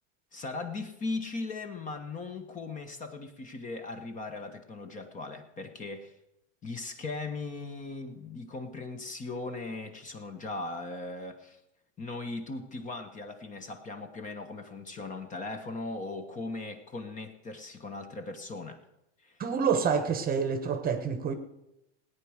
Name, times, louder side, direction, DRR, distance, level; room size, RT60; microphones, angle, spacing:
voice 1, 0.3-6.1 6.6-11.6 12.0-18.8 19.2-19.4, left 3 dB, 20° left, 1.1 m, -38 dB
voice 2, 19.4-21.3, right 6 dB, 25° right, 1.1 m, -27 dB
17.5 x 9.5 x 6.4 m
supercardioid pair, 140°, 37 cm